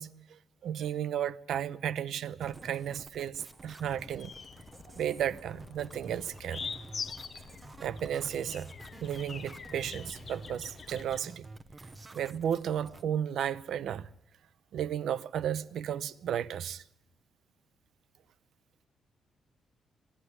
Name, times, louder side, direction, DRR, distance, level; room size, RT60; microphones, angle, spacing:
voice 1, 0.0-4.3 4.9-6.6 7.8-8.7 9.0-11.5 12.1-14.1 14.7-16.8, right 9 dB, 65° right, 0.7 m, -34 dB
sound 1, 2.4-13.0, right 2 dB, 20° right, 0.9 m, -50 dB
sound 2, 3.9-11.2, left 5 dB, 35° left, 0.7 m, -45 dB
24.5 x 11.0 x 9.9 m
cardioid pair, 175°, 0 cm